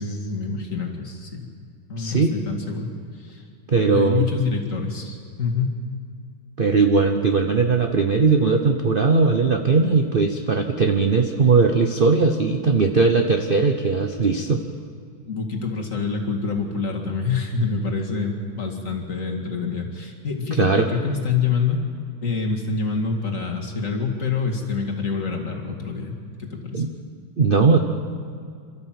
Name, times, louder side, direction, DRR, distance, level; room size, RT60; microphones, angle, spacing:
voice 1, 0.0-1.5 1.9-2.9 3.2-3.4 3.9-5.8 15.2-21.8 22.2-26.8, left 5 dB, 40° left, 1 dB, 2.4 m, -26 dB
voice 2, 2.0-2.4 3.7-4.3 6.6-14.6 20.6-20.9 26.7-26.9 27.4-27.8, right 4 dB, 55° right, 5 dB, 0.6 m, -19 dB
27.0 x 13.0 x 7.6 m, 2.3 s
omnidirectional pair, 2.3 m